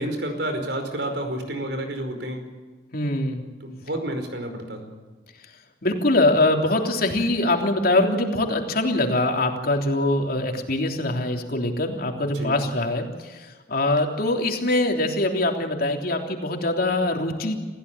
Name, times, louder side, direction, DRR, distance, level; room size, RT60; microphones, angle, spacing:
voice 1, 0.0-2.4 3.6-4.9 12.2-12.6, right 1 dB, 70° right, 6 dB, 5.1 m, -30 dB
voice 2, 2.9-3.4 5.8-17.6, left 2 dB, 55° left, 3 dB, 3.3 m, -23 dB
27.5 x 16.0 x 8.7 m, 1.3 s
head